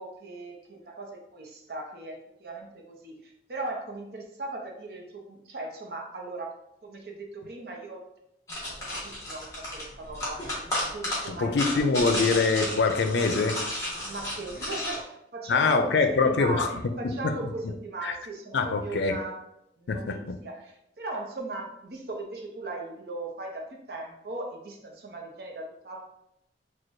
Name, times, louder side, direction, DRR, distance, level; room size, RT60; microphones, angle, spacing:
voice 1, 0.0-6.5 6.8-8.1 8.7-11.7 12.0-12.2 14.0-19.4 19.8-26.0, right 2 dB, 65° right, 1 dB, 0.7 m, -38 dB
sound 1, 8.5-15.0, left 1 dB, 20° left, 1.2 m, -33 dB
voice 2, 11.3-13.6 15.5-16.7 17.2-17.3 18.0-18.1 18.5-19.1 19.9-20.2, left 4 dB, 90° left, 7 dB, 0.4 m, -24 dB
6.1 x 2.2 x 2.6 m, 0.81 s
head